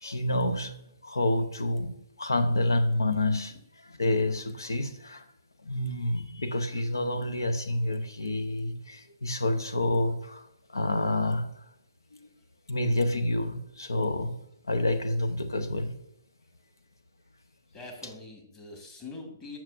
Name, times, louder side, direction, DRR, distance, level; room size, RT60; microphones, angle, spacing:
voice 1, 0.0-0.7 1.0-3.5 4.0-5.2 5.6-10.5 10.7-11.5 12.7-14.3 14.7-15.9, left 1 dB, 80° left, 8 dB, 0.7 m, -28 dB
voice 2, 17.7-19.6, left 3 dB, 20° left, -1 dB, 1.7 m, -44 dB
7.4 x 6.0 x 2.5 m, 0.81 s
figure-of-eight pair, 135°, 2 cm